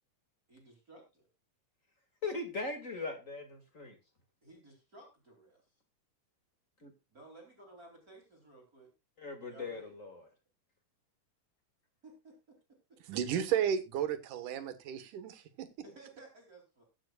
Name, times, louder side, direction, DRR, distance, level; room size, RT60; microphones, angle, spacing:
voice 1, 0.5-1.3 4.4-5.7 7.1-8.9 9.4-9.9 12.0-12.6 12.9-13.0 15.8-16.8, right 2 dB, 25° right, 3.3 m, -56 dB
voice 2, 2.2-4.0 6.8-6.9 9.2-10.2, left 3 dB, 30° left, 1.8 m, -39 dB
voice 3, 13.1-15.7, right 9 dB, 75° right, 2.8 m, -33 dB
21.5 x 7.8 x 2.3 m
omnidirectional pair, 3.7 m